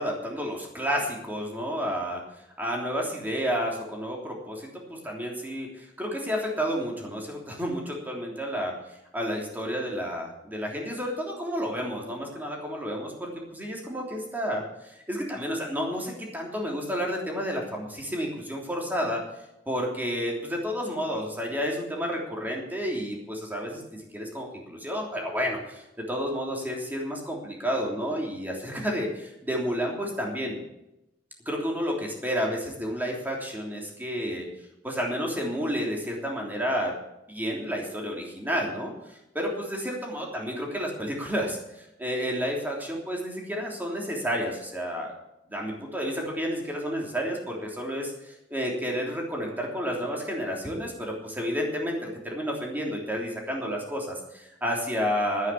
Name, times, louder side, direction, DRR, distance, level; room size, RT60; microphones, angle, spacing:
voice 1, 0.0-2.2 2.6-8.7 9.1-19.2 19.7-25.8 26.1-30.6 31.4-34.4 34.8-36.9 37.3-45.1 45.5-55.5, equal, 10° right, -1 dB, 3.2 m, -31 dB
10.5 x 9.5 x 8.4 m, 0.88 s
head